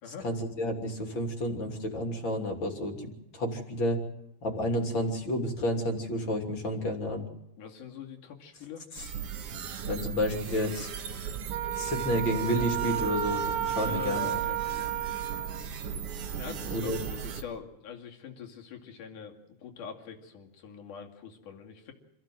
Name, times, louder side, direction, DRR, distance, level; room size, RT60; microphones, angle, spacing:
voice 1, 0.2-3.1 3.3-4.0 4.4-7.3 8.9-9.1 9.9-10.9 11.8-14.3 16.7-17.0, equal, 40° left, 3 dB, 3.5 m, -30 dB
voice 2, 7.6-8.8 13.7-14.9 16.4-19.3 19.6-21.9, left 7 dB, 85° left, 1 dB, 4.0 m, -43 dB
sound 1, 9.0-17.4, right 7 dB, 55° right, 2.3 m, -37 dB
Wind instrument woodwind instrument, 11.5-15.6, right 11 dB, 90° right, 2.6 m, -32 dB
27.5 x 15.0 x 7.8 m, 0.91 s
omnidirectional pair, 3.5 m